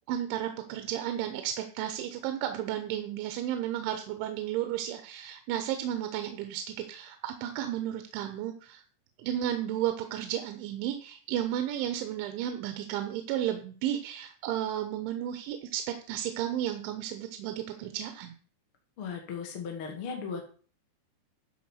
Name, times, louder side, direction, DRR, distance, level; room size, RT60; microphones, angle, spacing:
voice 1, 0.1-8.8 9.2-18.4, right 11 dB, 90° right, 7 dB, 3.3 m, -33 dB
voice 2, 19.0-20.4, left 6 dB, 50° left, 2 dB, 1.7 m, -36 dB
12.0 x 4.9 x 6.3 m, 0.41 s
omnidirectional pair, 5.2 m